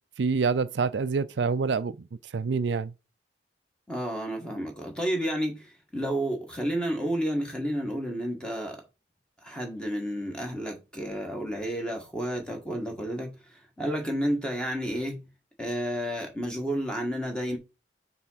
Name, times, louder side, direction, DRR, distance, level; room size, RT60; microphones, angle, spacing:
voice 1, 0.2-2.9, right 5 dB, 70° right, 0.5 m, -27 dB
voice 2, 3.9-8.8 9.4-15.2 15.6-17.6, equal, 5° left, 1.8 m, -31 dB
5.9 x 3.7 x 5.7 m
head